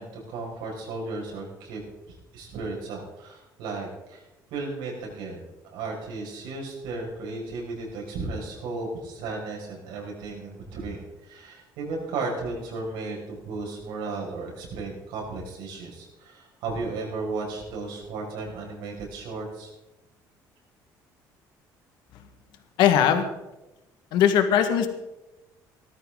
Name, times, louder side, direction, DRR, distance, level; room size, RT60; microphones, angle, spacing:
voice 1, 0.0-1.8 2.1-5.4 5.7-19.7, right 3 dB, 90° right, -1 dB, 6.2 m, -35 dB
voice 2, 22.8-23.3 24.1-24.9, left 9 dB, 75° left, 7 dB, 1.7 m, -19 dB
18.5 x 13.5 x 3.9 m, 0.99 s
cardioid pair, 170°, 8 cm